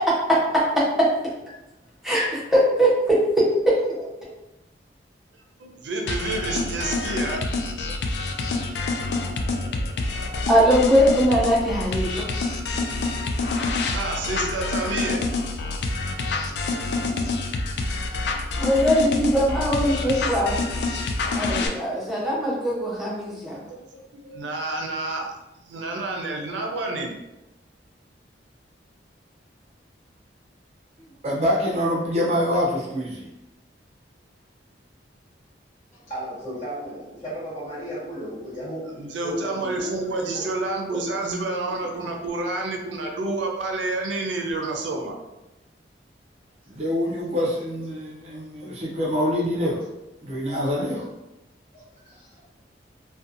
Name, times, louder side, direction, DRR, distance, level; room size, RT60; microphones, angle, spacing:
voice 1, 0.3-1.1 2.0-3.2 10.5-12.6 18.6-20.6 21.3-23.6, equal, ahead, -7 dB, 0.7 m, -21 dB
voice 2, 5.6-7.4 7.9-8.0 13.7-15.2 15.8-15.9 23.7-25.3 25.6-27.2 39.0-45.2, right 2 dB, 90° right, 2 dB, 0.5 m, -29 dB
sound 1, 6.1-21.7, left 3 dB, 70° left, 0.3 m, -27 dB
voice 3, 31.0-33.3 46.7-49.8 50.2-51.1, equal, 35° right, -4 dB, 0.5 m, -25 dB
voice 4, 35.9-40.5 40.9-41.0 48.6-48.7 51.7-52.5, equal, 40° left, -9 dB, 1.4 m, -35 dB
2.6 x 2.2 x 2.5 m, 0.96 s
head